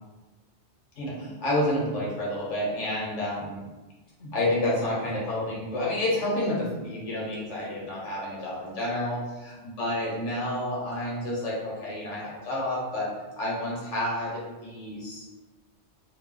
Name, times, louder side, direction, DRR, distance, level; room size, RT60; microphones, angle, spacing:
voice 1, 1.0-3.6 4.2-9.5 9.8-13.1 13.4-15.2, left 1 dB, 80° left, -5 dB, 1.3 m, -29 dB
2.9 x 2.1 x 3.7 m, 1.2 s
omnidirectional pair, 1.2 m